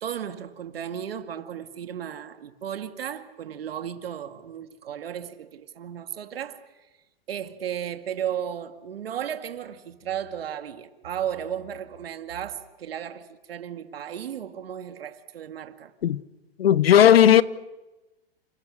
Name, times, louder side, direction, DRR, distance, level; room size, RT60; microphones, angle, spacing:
voice 1, 0.0-6.6 7.3-15.9, right 9 dB, 80° right, 2.3 m, -34 dB
voice 2, 16.6-17.4, left 10 dB, 85° left, 1.2 m, -15 dB
29.0 x 29.0 x 6.6 m
hypercardioid pair, 135°, 29 cm